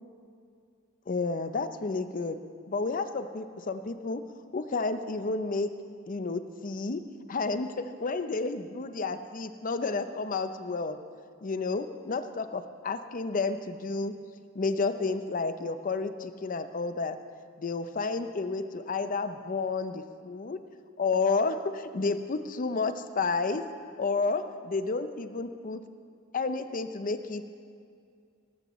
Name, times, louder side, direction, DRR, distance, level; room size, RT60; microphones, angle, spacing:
voice 1, 1.1-2.4 2.7-4.2 4.5-5.7 6.1-7.0 7.3-11.0 11.4-14.1 14.5-17.2 17.6-20.6 21.0-23.7 24.0-25.8 26.3-27.5, left 4 dB, 40° left, 10 dB, 0.5 m, -31 dB
18.0 x 14.0 x 3.1 m, 2.2 s
head